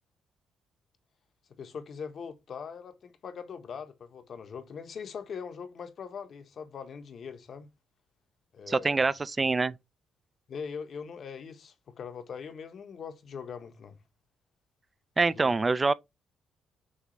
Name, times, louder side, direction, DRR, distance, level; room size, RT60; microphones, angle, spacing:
voice 1, 1.6-7.7 8.5-9.0 10.5-14.0 15.3-15.6, left 6 dB, 55° left, 0.9 m, -41 dB
voice 2, 8.7-9.7 15.2-15.9, right 3 dB, 25° right, 0.3 m, -25 dB
6.4 x 2.4 x 3.0 m
cardioid pair, 90°, 0 cm